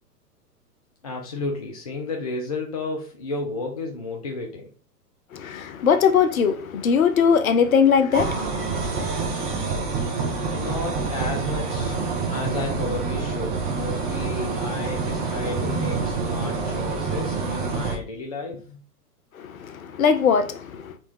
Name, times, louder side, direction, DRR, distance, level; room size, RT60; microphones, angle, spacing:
voice 1, 1.0-4.7 10.5-18.8, left 3 dB, 25° left, 0.3 m, -32 dB
voice 2, 5.3-8.5 19.3-21.0, left 6 dB, 60° left, 0.7 m, -20 dB
sound 1, 8.1-18.0, right 4 dB, 20° right, 0.6 m, -27 dB
4.1 x 2.3 x 4.5 m
figure-of-eight pair, 110°, 47 cm